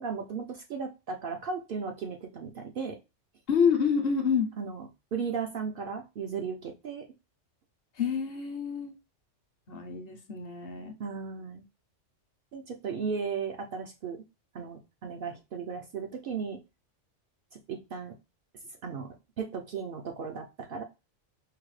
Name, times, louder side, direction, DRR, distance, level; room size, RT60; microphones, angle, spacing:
voice 1, 0.0-3.0 4.6-7.1 11.0-11.6 12.5-14.2 14.5-16.6 17.5-18.2 18.8-20.8, right 5 dB, 60° right, 0.6 m, -36 dB
voice 2, 3.5-4.5 8.0-8.9 9.7-10.9, left 6 dB, 60° left, 0.8 m, -27 dB
4.7 x 2.1 x 3.1 m
omnidirectional pair, 1.3 m